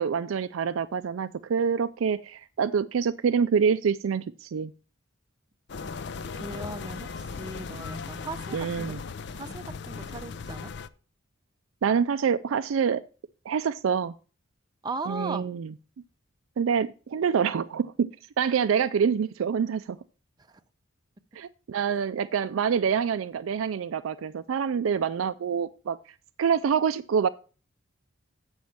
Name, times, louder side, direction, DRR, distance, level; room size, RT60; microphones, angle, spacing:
voice 1, 0.0-4.7 8.5-9.0 11.8-13.0 13.5-14.1 15.1-15.7 16.6-18.1 18.4-20.0 21.4-26.0 26.4-27.3, right 6 dB, 85° right, 11 dB, 0.4 m, -26 dB
sound 1, 5.7-10.9, left 5 dB, 55° left, 0.5 m, -37 dB
voice 2, 6.3-8.9 9.3-10.7 14.8-15.4 20.4-20.6, right 3 dB, 20° right, 8 dB, 0.5 m, -38 dB
8.7 x 6.3 x 5.7 m, 0.37 s
head